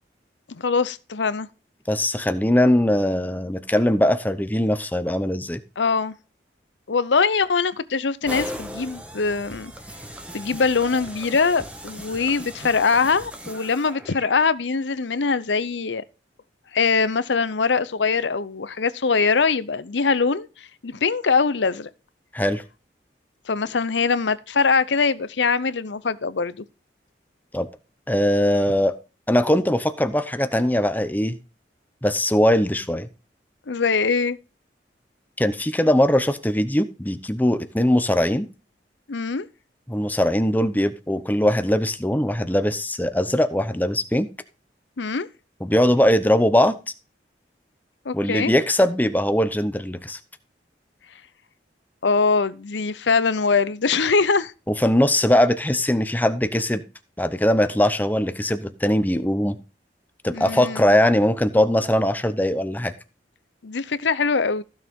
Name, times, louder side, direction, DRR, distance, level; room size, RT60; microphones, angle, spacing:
voice 1, 0.5-1.5 5.8-6.1 6.9-9.7 10.3-16.0 16.7-21.9 23.5-26.6 33.7-34.4 39.1-39.5 45.0-45.3 48.0-48.5 52.0-54.5 60.3-60.9 63.6-64.6, left 4 dB, 80° left, 0.7 m, -22 dB
voice 2, 1.9-5.6 22.3-22.6 27.5-27.7 28.1-28.9 29.3-31.4 32.0-33.1 35.4-38.5 39.9-44.3 45.6-46.7 48.1-50.2 54.8-56.8 57.2-59.6 60.2-62.9, left 1 dB, 10° left, 0.8 m, -21 dB
sound 1, 8.3-14.3, equal, 5° right, 1.3 m, -38 dB
15.0 x 6.6 x 3.7 m
head